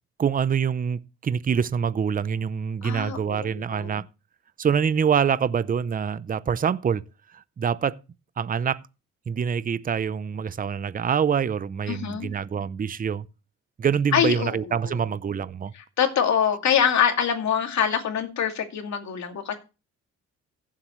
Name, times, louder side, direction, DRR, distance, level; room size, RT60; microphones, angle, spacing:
voice 1, 0.2-4.0 4.6-7.0 7.3-8.0 8.4-8.8 9.3-13.3 13.8-15.7, right 7 dB, 30° right, 0.6 m, -25 dB
voice 2, 2.8-4.0 11.9-12.3 14.1-15.0 16.0-19.6, left 8 dB, 65° left, 2.4 m, -24 dB
15.5 x 7.6 x 3.1 m
cardioid pair, 90°, 30 cm